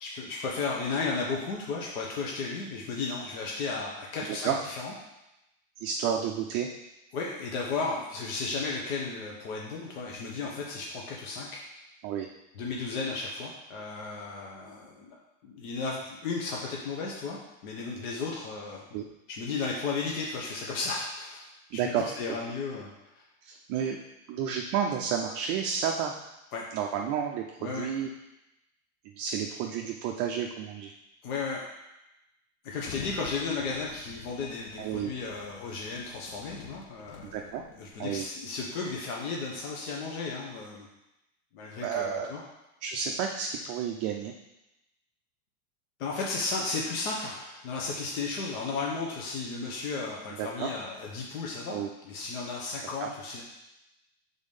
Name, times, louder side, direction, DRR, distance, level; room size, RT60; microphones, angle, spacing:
voice 1, 0.0-4.9 7.1-11.6 12.6-18.8 19.4-21.5 21.8-22.9 26.5-26.7 27.6-27.9 31.2-31.6 32.6-37.4 37.8-40.9 41.5-42.4 46.0-51.8 52.0-53.4, left 4 dB, 65° left, -2 dB, 1.3 m, -34 dB
voice 2, 5.8-6.7 12.0-12.3 18.9-19.1 21.7-22.1 23.4-24.0 24.3-26.1 26.7-28.1 29.1-30.9 34.8-35.1 37.2-37.6 38.0-38.3 41.8-42.3 42.8-44.3 50.4-50.7 51.7-51.9 53.0-53.1, right 8 dB, 30° right, 1 dB, 0.4 m, -31 dB
Sliding door, 32.7-38.0, left 10 dB, 85° left, 0.6 m, -48 dB
5.0 x 4.1 x 5.4 m, 0.93 s
supercardioid pair, 135°, 44 cm